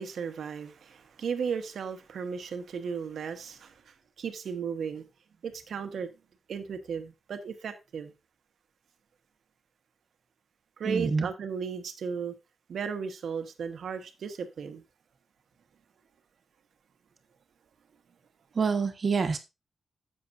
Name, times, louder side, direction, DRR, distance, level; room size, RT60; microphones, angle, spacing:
voice 1, 0.0-5.0 5.4-6.1 6.5-8.1 10.8-12.3 12.7-14.8, right 6 dB, 75° right, 1.2 m, -35 dB
voice 2, 10.8-11.3 18.5-19.4, right 5 dB, 45° right, 1.4 m, -26 dB
11.0 x 7.6 x 2.6 m
wide cardioid pair, 125°, 0 cm